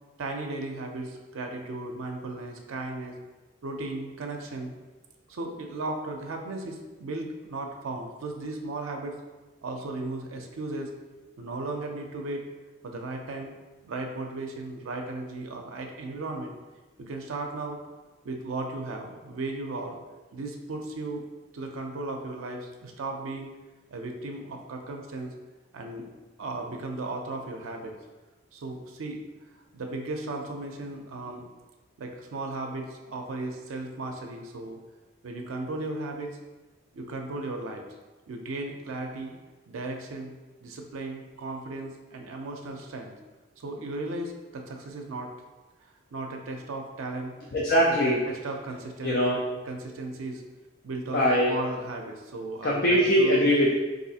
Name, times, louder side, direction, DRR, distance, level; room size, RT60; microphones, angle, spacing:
voice 1, 0.2-3.1 3.6-4.7 5.3-9.2 9.6-10.9 11.4-12.4 12.8-13.5 13.8-16.5 17.0-17.8 18.2-20.0 20.3-21.3 21.5-23.5 23.9-25.3 25.7-26.1 26.4-28.0 28.5-29.2 29.7-31.4 32.0-34.8 35.2-36.4 36.9-37.9 38.3-39.4 39.7-40.3 40.6-43.2 43.6-45.3 46.1-47.3 48.0-50.4 50.8-53.5, right 2 dB, 85° right, 2 dB, 0.5 m, -36 dB
voice 2, 47.5-48.2 49.0-49.4 51.1-51.5 52.6-53.7, equal, 45° left, -4 dB, 0.4 m, -22 dB
4.0 x 2.5 x 2.7 m, 1.2 s
head